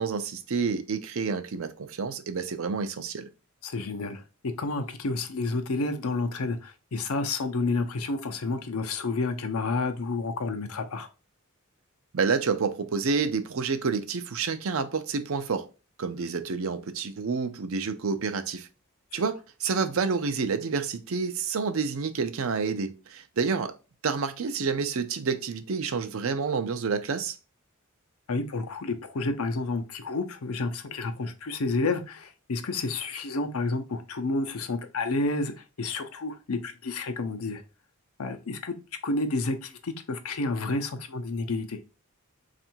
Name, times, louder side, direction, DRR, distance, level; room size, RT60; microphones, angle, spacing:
voice 1, 0.0-3.3 12.1-15.7 16.0-18.7 19.1-23.7 24.0-27.3, right 5 dB, 65° right, 0.5 m, -29 dB
voice 2, 3.6-11.1 16.2-16.3 19.1-19.2 28.3-37.6 38.2-38.8 39.0-41.8, left 3 dB, 80° left, 0.6 m, -30 dB
3.5 x 2.5 x 4.4 m
head